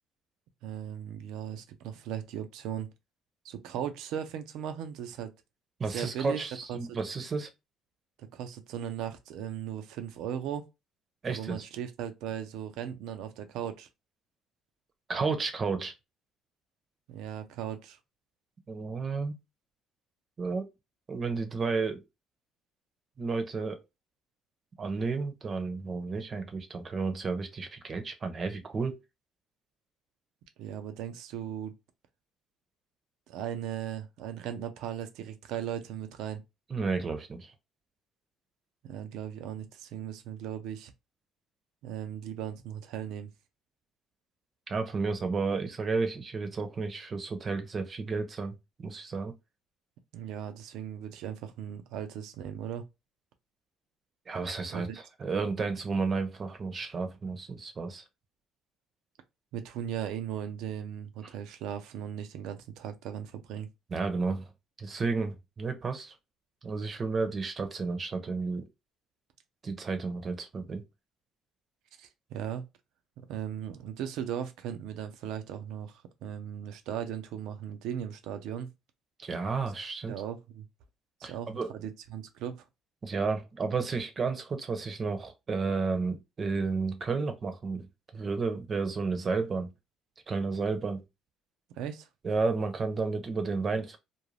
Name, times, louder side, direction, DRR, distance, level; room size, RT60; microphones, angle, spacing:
voice 1, 0.6-2.9 3.4-5.3 5.9-6.4 6.7-7.0 8.3-10.6 11.3-13.9 17.1-18.0 30.6-31.7 33.3-36.4 38.8-40.9 41.8-43.3 50.1-52.8 54.7-55.0 59.5-63.7 72.0-72.7 73.3-78.7 80.1-80.7 81.2-82.6 91.8-92.1, right 9 dB, 75° right, 0.5 m, -37 dB
voice 2, 5.8-7.5 11.2-11.6 15.1-15.9 18.7-19.4 20.4-20.6 21.1-22.0 23.2-23.8 24.8-29.0 36.7-37.5 44.7-48.5 48.8-49.3 54.3-58.0 63.9-64.5 64.8-66.1 66.6-68.6 69.6-70.8 79.2-80.1 81.2-81.7 83.0-87.9 88.1-89.7 90.3-91.0 92.2-94.0, right 4 dB, 40° right, 0.7 m, -32 dB
2.5 x 2.2 x 3.2 m
supercardioid pair, 75°, 0 cm